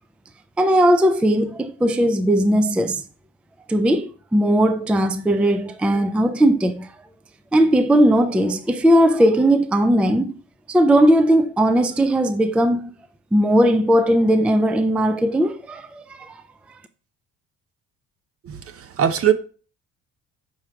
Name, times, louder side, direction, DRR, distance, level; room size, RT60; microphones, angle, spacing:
voice 1, 0.6-3.0 3.7-6.9 7.5-10.4 10.7-12.9 13.3-16.4, equal, 5° right, 0.4 m, -18 dB
voice 2, 18.4-19.3, right 9 dB, 45° right, 0.7 m, -21 dB
6.3 x 4.6 x 3.5 m
cardioid pair, 110°, 32 cm